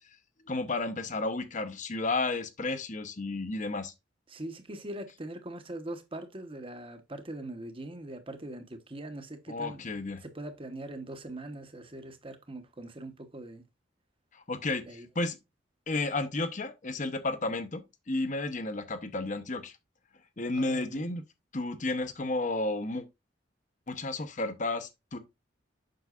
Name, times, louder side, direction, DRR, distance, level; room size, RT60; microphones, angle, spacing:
voice 1, 0.4-3.9 9.5-10.2 14.3-15.4 15.9-19.7 20.4-21.2 21.5-23.0 23.9-25.2, left 2 dB, 40° left, 1.0 m, -32 dB
voice 2, 4.3-13.6 14.9-15.1 20.5-21.1, right 1 dB, 30° right, 1.1 m, -42 dB
7.8 x 6.2 x 2.5 m
head